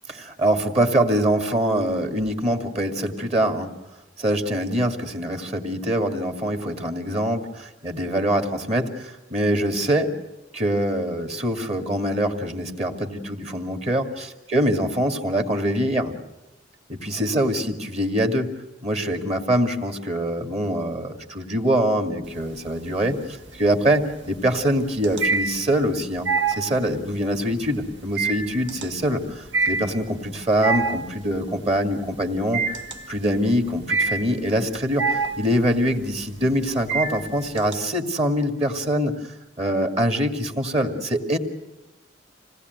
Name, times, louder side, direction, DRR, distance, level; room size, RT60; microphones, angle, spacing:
voice 1, 0.1-3.7 4.2-10.2 10.5-16.1 16.9-18.5 18.8-26.3 26.6-32.6 33.1-39.1 39.6-41.4, right 1 dB, 35° right, 6 dB, 2.3 m, -24 dB
sound 1, 22.2-22.9 23.2-37.7, right 4 dB, 85° right, 1.5 m, -27 dB
26.5 x 18.5 x 9.4 m, 0.99 s
head